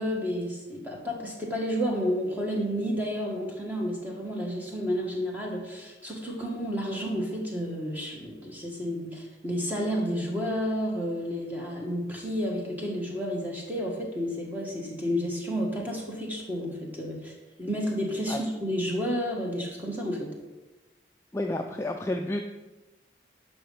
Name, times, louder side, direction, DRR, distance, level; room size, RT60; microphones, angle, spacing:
voice 1, 0.0-17.3 17.6-20.3, equal, 10° right, -2 dB, 1.5 m, -31 dB
voice 2, 21.3-22.4, left 1 dB, 15° left, 3 dB, 0.3 m, -30 dB
11.0 x 5.3 x 3.9 m, 1.1 s
head